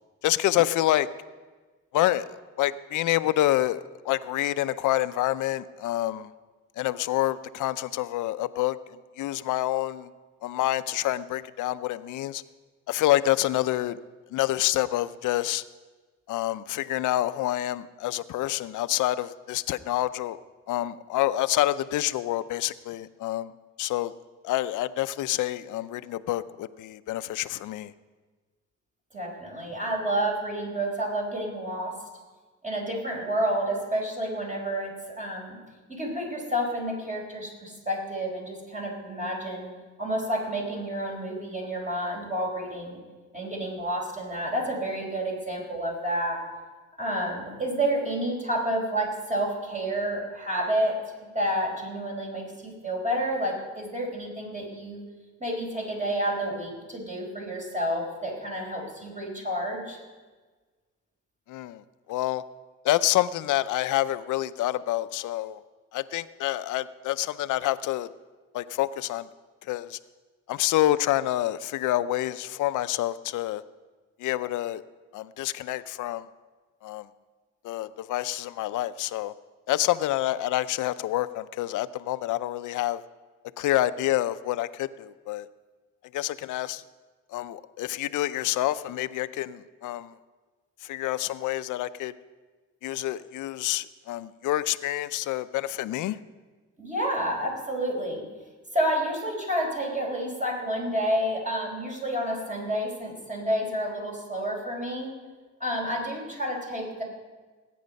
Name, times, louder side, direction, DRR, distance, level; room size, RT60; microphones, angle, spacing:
voice 1, 0.2-1.1 1.9-6.3 6.8-10.1 10.4-12.4 12.9-14.0 14.3-15.6 16.3-20.4 20.7-23.5 23.8-24.1 24.4-27.9 61.5-61.8 62.1-62.4 62.8-65.6 65.9-68.1 68.5-69.3 69.7-70.0 70.5-73.6 74.2-74.8 75.1-76.3 76.8-77.1 77.6-79.3 79.7-83.0 83.6-85.5 86.1-86.8 87.3-90.1 90.8-92.1 92.8-96.2, left 14 dB, 80° left, 14 dB, 0.6 m, -27 dB
voice 2, 29.1-32.0 32.6-35.6 35.9-39.7 40.0-43.0 43.3-46.4 47.0-55.0 55.4-60.0 96.8-98.2 98.7-105.1 105.6-107.0, right 1 dB, 25° right, 0 dB, 4.8 m, -30 dB
19.5 x 9.3 x 5.3 m, 1.3 s
cardioid pair, 90°, 30 cm